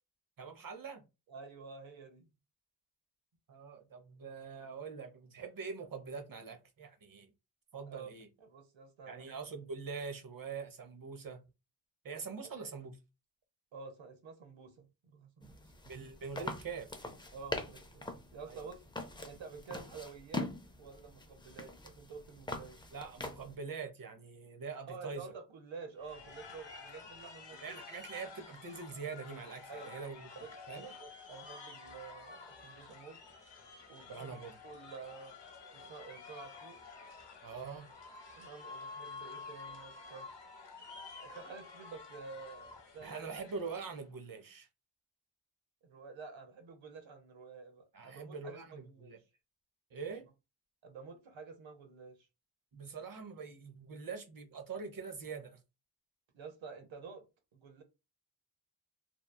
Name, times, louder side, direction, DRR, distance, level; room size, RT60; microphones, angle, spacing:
voice 1, 0.4-1.0 3.5-7.3 7.7-8.3 9.1-11.4 12.0-13.0 15.8-16.9 18.5-18.7 22.9-25.2 27.6-30.2 30.7-30.9 34.1-34.5 37.4-37.9 43.0-44.7 47.9-49.2 49.9-50.3 52.7-55.6, right 5 dB, 50° right, 0.7 m, -44 dB
voice 2, 1.3-2.3 7.9-8.1 8.4-9.4 12.4-12.7 13.7-15.6 17.3-18.8 19.2-20.5 20.8-22.9 24.9-27.6 29.7-30.1 30.4-33.2 33.9-34.4 34.6-35.4 35.7-36.8 38.4-40.3 41.2-43.3 45.8-49.1 50.8-52.3 56.3-57.2 57.5-57.8, right 5 dB, 80° right, 0.8 m, -50 dB
sound 1, 15.4-23.6, left 2 dB, 10° left, 0.3 m, -43 dB
sound 2, 26.0-44.0, left 4 dB, 65° left, 0.8 m, -51 dB
2.9 x 2.2 x 2.2 m
cardioid pair, 65°, 45 cm